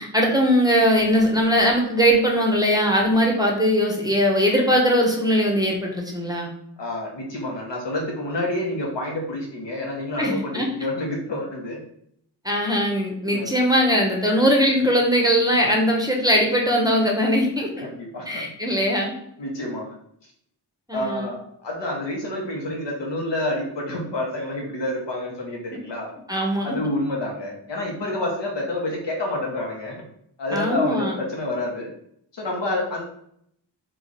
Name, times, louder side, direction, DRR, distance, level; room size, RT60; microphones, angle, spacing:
voice 1, 0.0-6.5 10.2-10.7 12.4-17.9 18.3-19.1 20.9-21.3 26.3-26.7 30.5-31.1, equal, 10° right, -1 dB, 0.6 m, -20 dB
voice 2, 6.8-11.8 13.2-13.6 17.8-18.5 19.4-19.9 20.9-26.1 26.6-29.9 30.4-31.9 32.3-33.0, left 1 dB, 80° left, -1 dB, 1.0 m, -28 dB
3.0 x 2.4 x 3.8 m, 0.70 s
wide cardioid pair, 105°, 42 cm